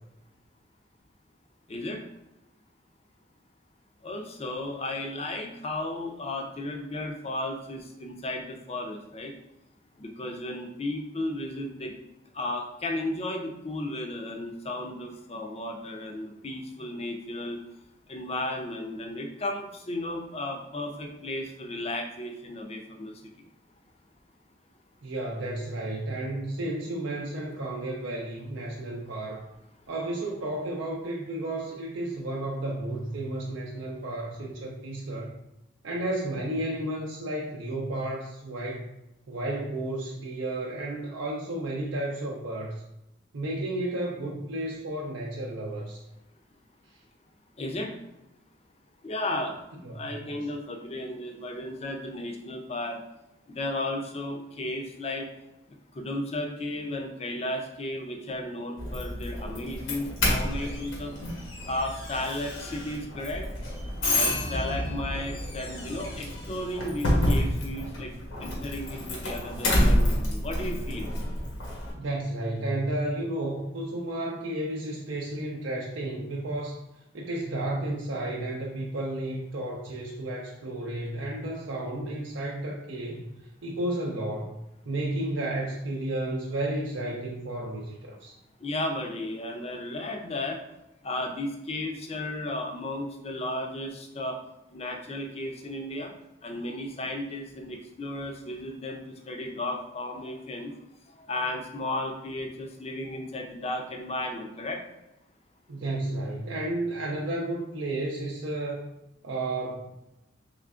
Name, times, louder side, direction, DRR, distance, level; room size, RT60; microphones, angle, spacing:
voice 1, 1.7-2.0 4.0-9.3 10.0-11.9 12.3-17.6 18.1-23.1 47.6-47.9 49.0-49.6 49.9-53.0 53.5-55.3 55.9-61.1 61.7-63.5 64.1-68.1 68.4-71.1 88.6-90.6 91.0-94.4 94.7-96.1 96.4-100.7 101.2-104.8, left 1 dB, 30° left, 3 dB, 0.4 m, -34 dB
voice 2, 25.0-29.4 29.9-35.4 35.8-38.8 39.3-42.8 43.3-46.0 49.8-50.1 71.9-76.8 77.1-83.2 83.6-84.6 84.9-88.3 105.7-108.9 109.2-109.9, right 1 dB, 80° right, -3 dB, 0.5 m, -32 dB
Doorbell, 58.8-71.9, left 1 dB, 85° left, 1.0 m, -29 dB
3.7 x 3.2 x 2.4 m, 0.87 s
head